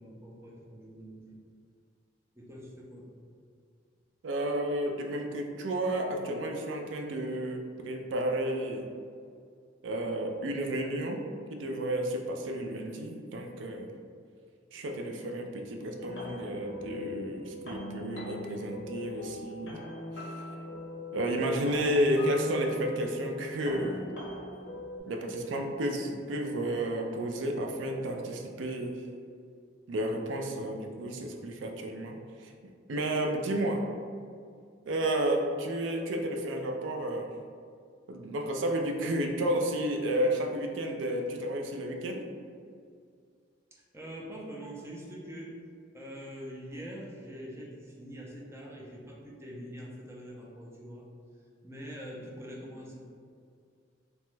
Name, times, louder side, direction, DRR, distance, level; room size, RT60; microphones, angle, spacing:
voice 1, 0.0-1.4 2.4-3.1 43.7-45.6 45.9-51.1 51.6-53.0, equal, 15° right, -3 dB, 0.5 m, -44 dB
voice 2, 4.2-8.9 9.8-11.2 11.5-13.9 14.7-19.8 20.2-20.3 21.1-24.1 25.1-29.1 29.9-32.5 32.9-33.8 34.9-37.3 38.1-42.2, right 1 dB, 80° right, 3 dB, 0.4 m, -31 dB
sound 1, 16.0-25.0, left 2 dB, 70° left, 0.6 m, -41 dB
2.9 x 2.2 x 3.1 m, 2.2 s
head